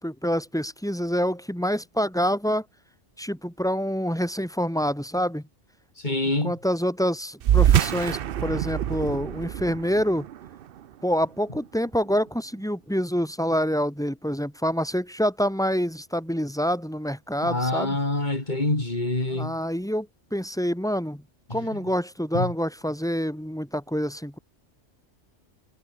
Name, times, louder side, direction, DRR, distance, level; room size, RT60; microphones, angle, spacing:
voice 1, 0.0-2.6 3.2-5.4 6.4-10.3 11.0-18.0 19.3-21.2 21.5-24.4, equal, 5° left, 4.5 m, -26 dB
voice 2, 6.0-6.5 17.4-19.6 22.3-22.5, left 2 dB, 40° left, 3.4 m, -26 dB
sound 1, 7.4-12.3, right 10 dB, 60° right, 0.7 m, -25 dB
omnidirectional pair, 1.2 m